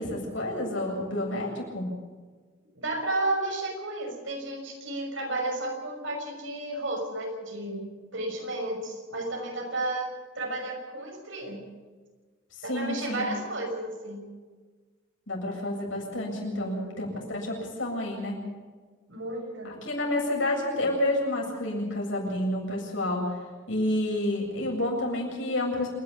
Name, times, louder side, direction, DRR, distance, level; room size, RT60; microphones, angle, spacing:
voice 1, 0.0-1.9 12.5-13.3 15.3-18.4 19.8-23.4 23.7-25.9, left 1 dB, 70° left, -1 dB, 7.7 m, -29 dB
voice 2, 2.8-7.8 8.1-10.1 10.3-11.6 12.6-14.2 16.4-17.0 19.1-19.8, right 2 dB, 75° right, 2 dB, 6.0 m, -32 dB
27.5 x 11.5 x 8.5 m, 1.4 s
head